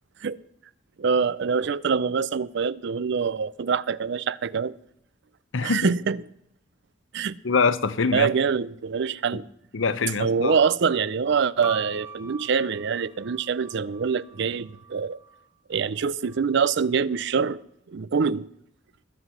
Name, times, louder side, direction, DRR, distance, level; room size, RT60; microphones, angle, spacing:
voice 1, 1.0-4.8 5.6-6.2 7.1-7.4 8.1-9.5 10.2-15.2 15.7-17.6 17.9-18.5, right 6 dB, 65° right, 0.5 m, -25 dB
voice 2, 5.5-5.9 7.4-8.3 9.7-10.6, left 4 dB, 75° left, 0.8 m, -24 dB
sound 1, 11.6-15.5 16.3-17.0, right 4 dB, 15° right, 0.9 m, -42 dB
20.5 x 7.9 x 5.7 m
head